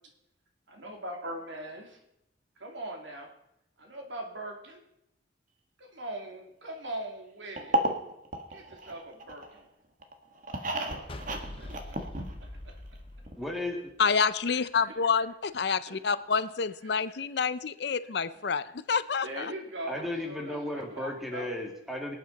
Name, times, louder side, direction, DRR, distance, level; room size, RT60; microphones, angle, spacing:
voice 1, 0.7-2.0 2.6-3.3 3.8-4.8 5.8-7.8 8.5-9.7 10.6-12.0 12.5-12.7 15.9-16.0 19.2-21.6, right 1 dB, 85° right, 3 dB, 2.6 m, -41 dB
sound 1, 7.6-9.6 10.0-12.7 12.9-13.0 13.3-13.4, right 2 dB, 45° right, 1.5 m, -32 dB
sound 2, 11.1-14.3, left 1 dB, 30° left, 0.8 m, -44 dB
voice 2, 13.4-13.9 19.9-22.2, left 1 dB, ahead, 1 dB, 2.2 m, -34 dB
voice 3, 14.0-19.5, left 5 dB, 60° left, 15 dB, 0.5 m, -28 dB
24.5 x 8.8 x 4.1 m, 0.84 s
head